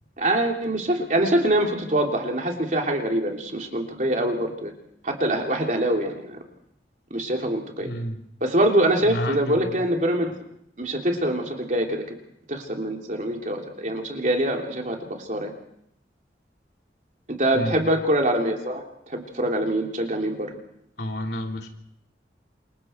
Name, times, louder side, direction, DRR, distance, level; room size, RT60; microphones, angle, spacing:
voice 1, 0.2-4.7 5.0-6.4 7.1-7.9 8.4-10.4 10.8-12.1 12.5-15.5 17.4-20.6, right 1 dB, 45° right, 1 dB, 3.3 m, -24 dB
voice 2, 7.8-8.2 9.0-9.8 17.5-17.9 21.0-21.7, equal, 70° left, 2 dB, 3.1 m, -31 dB
27.5 x 23.5 x 4.6 m, 0.74 s
head